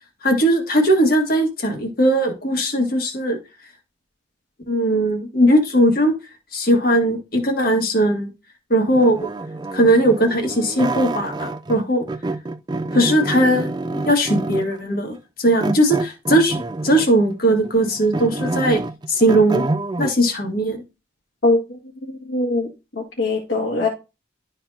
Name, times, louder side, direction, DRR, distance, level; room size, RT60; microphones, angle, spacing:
voice 1, 0.2-3.4 4.7-6.1 6.5-8.3 8.7-9.2 9.7-12.0 12.9-13.7 14.1-16.6 16.8-18.8 19.1-19.6 20.0-20.8, right 1 dB, 50° left, 1.7 m, -18 dB
sound 1, 8.9-11.8 12.1-14.8 15.6-17.2 17.6-20.1, right 2 dB, 20° right, 0.4 m, -27 dB
voice 2, 21.4-21.8 22.1-22.7 23.0-23.9, left 2 dB, 70° left, 2.1 m, -21 dB
12.0 x 4.3 x 2.8 m
head